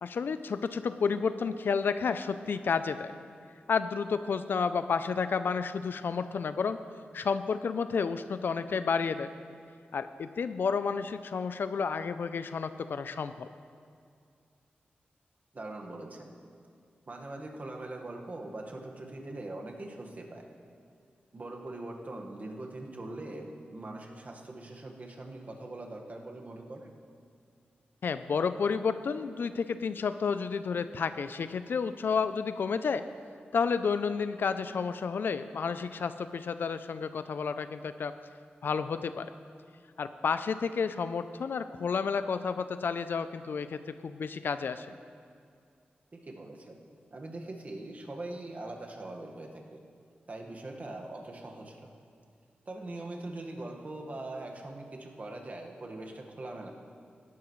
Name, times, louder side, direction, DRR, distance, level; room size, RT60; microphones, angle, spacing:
voice 1, 0.0-3.1 3.7-6.8 7.1-9.3 9.9-13.5 28.0-33.0 33.5-38.1 38.6-39.3 40.0-44.9, left 5 dB, 70° left, 11 dB, 0.4 m, -31 dB
voice 2, 15.5-16.3 17.1-20.4 21.3-26.9 46.1-46.8 47.1-49.8 50.3-51.9 52.6-56.7, right 2 dB, 45° right, 1 dB, 1.5 m, -42 dB
17.0 x 11.5 x 3.1 m, 2.3 s
cardioid pair, 65°, 4 cm